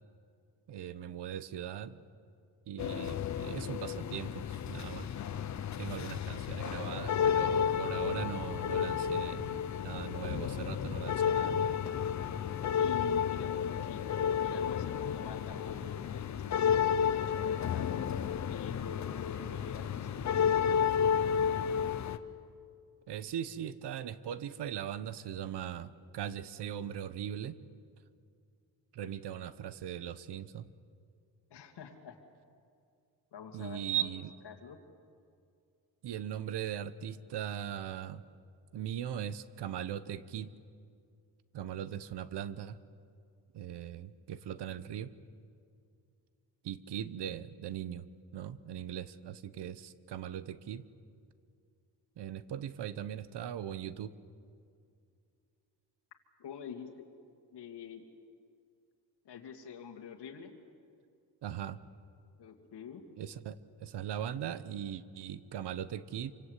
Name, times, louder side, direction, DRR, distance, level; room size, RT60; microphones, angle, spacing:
voice 1, 0.7-2.0 2.7-5.1 5.8-11.8 23.1-27.6 28.9-30.7 33.5-34.3 36.0-38.2 38.7-40.5 41.5-42.8 43.5-45.1 46.6-48.1 48.3-50.9 52.2-54.1 61.4-61.8 63.2-66.3, right 10 dB, 70° right, 15 dB, 1.1 m, -39 dB
sound 1, 2.8-22.2, left 8 dB, 45° left, 0.9 m, -32 dB
voice 2, 12.7-16.8 17.1-17.9 18.5-21.3 31.5-32.2 33.3-34.1 34.4-34.8 56.4-57.1 57.5-58.0 59.2-60.5 62.4-63.0, left 7 dB, 70° left, 1 dB, 2.5 m, -46 dB
26.0 x 25.0 x 8.3 m, 2.4 s
wide cardioid pair, 160°, 42 cm